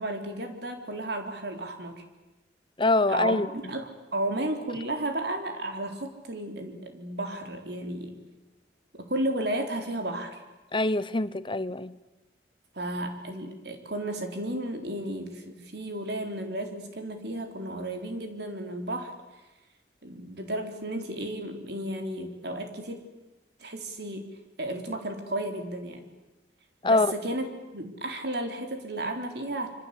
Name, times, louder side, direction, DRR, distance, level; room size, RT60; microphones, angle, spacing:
voice 1, 0.0-2.0 3.1-8.2 8.9-10.4 12.7-19.2 20.0-23.0 23.6-24.3 24.6-26.1 26.8-29.7, right 1 dB, 65° right, 5 dB, 4.0 m, -33 dB
voice 2, 2.8-3.5 10.7-12.0 26.8-27.1, left 2 dB, 25° left, 16 dB, 0.9 m, -24 dB
26.5 x 25.0 x 8.5 m, 1.0 s
head